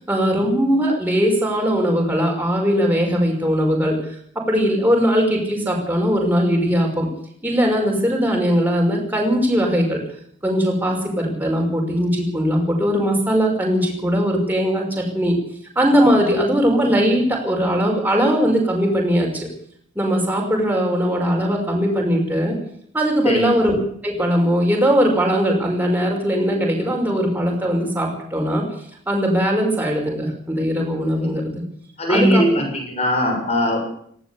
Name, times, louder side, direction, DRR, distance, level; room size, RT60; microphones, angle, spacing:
voice 1, 0.1-4.0 4.5-7.1 7.4-10.0 10.4-15.4 15.8-19.5 20.0-22.6 22.9-23.8 24.0-28.6 29.1-31.4 32.1-32.6, equal, 10° right, 0 dB, 5.5 m, -20 dB
voice 2, 32.0-33.8, equal, 30° left, 2 dB, 7.2 m, -19 dB
19.0 x 16.5 x 8.4 m, 0.65 s
head